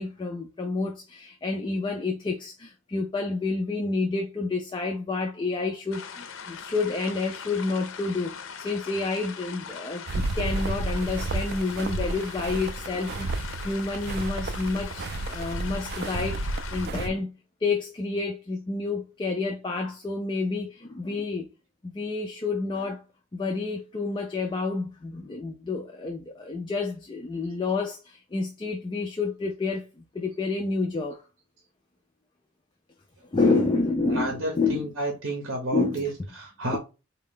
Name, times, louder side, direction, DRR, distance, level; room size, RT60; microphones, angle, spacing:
voice 1, 0.0-17.3 17.6-21.5 21.8-23.0 23.3-31.2 33.3-34.9 35.7-36.0, left 3 dB, 25° left, 0.4 m, -29 dB
sound 1, 5.9-16.9, left 6 dB, 80° left, 0.5 m, -41 dB
sound 2, 10.1-17.1, right 3 dB, 55° right, 0.4 m, -32 dB
voice 2, 34.1-36.8, right 1 dB, 70° right, 1.0 m, -31 dB
4.0 x 2.3 x 3.5 m
head